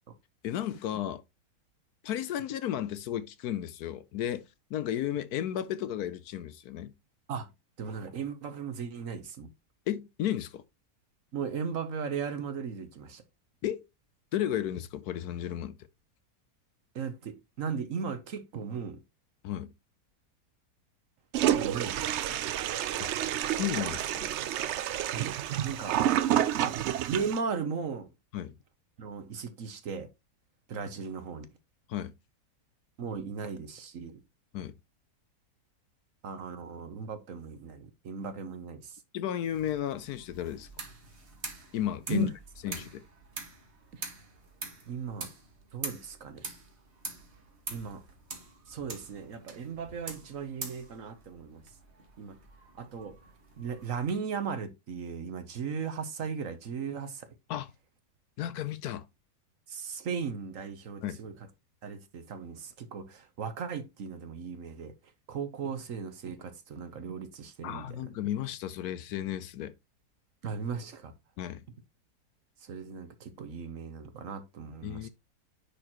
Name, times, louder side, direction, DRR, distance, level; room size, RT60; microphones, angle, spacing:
voice 1, 0.4-1.2 2.0-6.9 9.9-10.6 13.6-13.8 14.3-15.8 19.4-19.7 23.0-23.1 23.5-24.3 28.3-28.6 31.9-32.1 34.5-34.7 39.1-40.7 41.7-42.3 42.6-43.0 57.5-57.7 58.4-59.1 61.0-61.2 67.6-69.7 71.4-71.6 74.8-75.1, left 11 dB, 75° left, 1.1 m, -33 dB
voice 2, 7.8-9.5 11.3-13.2 16.9-19.0 21.5-22.1 25.1-25.3 25.6-26.0 26.6-26.7 27.1-28.1 29.0-30.1 30.7-31.5 33.0-34.2 36.2-39.0 42.1-42.3 43.9-44.0 44.9-45.3 45.7-46.5 47.7-48.0 48.7-51.6 52.2-52.4 52.8-53.2 53.6-57.3 59.7-61.3 61.8-64.9 65.3-68.0 70.4-71.1 72.6-75.1, right 6 dB, 55° right, 1.2 m, -37 dB
Toilet flush, 21.3-27.4, right 11 dB, 85° right, 0.6 m, -29 dB
sound 1, 39.5-54.1, right 3 dB, 40° right, 1.9 m, -45 dB
9.7 x 4.4 x 3.0 m
omnidirectional pair, 1.7 m